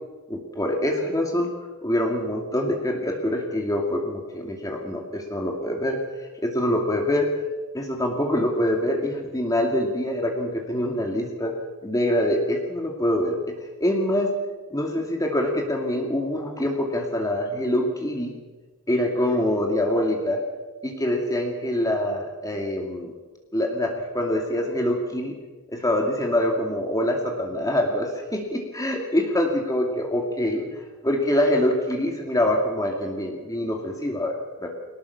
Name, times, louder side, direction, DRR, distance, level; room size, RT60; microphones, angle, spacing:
voice 1, 0.3-1.5 1.8-6.0 6.4-7.3 7.7-11.5 11.8-13.4 13.8-14.3 14.7-18.3 18.9-20.4 20.8-23.1 23.5-25.3 25.7-30.8 31.0-34.7, left 1 dB, 15° left, 1 dB, 2.5 m, -25 dB
23.5 x 18.5 x 7.1 m, 1.3 s
head